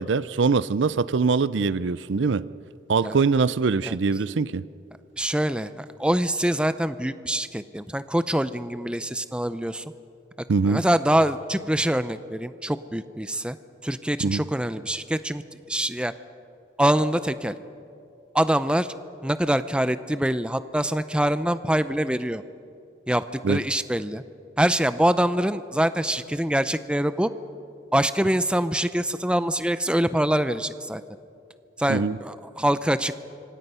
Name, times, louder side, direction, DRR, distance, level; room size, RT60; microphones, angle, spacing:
voice 1, 0.0-2.5 2.9-4.6 10.5-10.8 14.2-14.4 23.4-23.6 31.9-32.2, right 4 dB, 75° right, 17 dB, 0.5 m, -23 dB
voice 2, 5.2-9.8 10.6-13.6 13.8-15.4 15.7-16.1 16.8-17.6 18.3-18.9 19.2-22.4 23.1-24.2 24.6-27.3 27.9-31.0 31.8-33.2, right 1 dB, 5° right, 13 dB, 0.5 m, -24 dB
26.0 x 25.5 x 5.6 m, 2.6 s
head